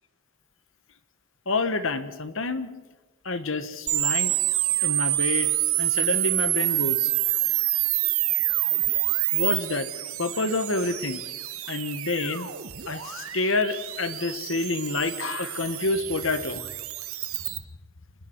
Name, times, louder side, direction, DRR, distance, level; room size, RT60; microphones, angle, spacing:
voice 1, 1.4-2.7 3.2-4.3 4.8-5.5 5.8-7.1 9.3-9.9 10.2-11.2 11.7-12.5 12.9-16.6, left 3 dB, 60° left, 11 dB, 1.5 m, -28 dB
sound 1, 3.9-17.6, right 15 dB, 75° right, 1.5 m, -27 dB
26.0 x 20.5 x 4.7 m, 1.2 s
head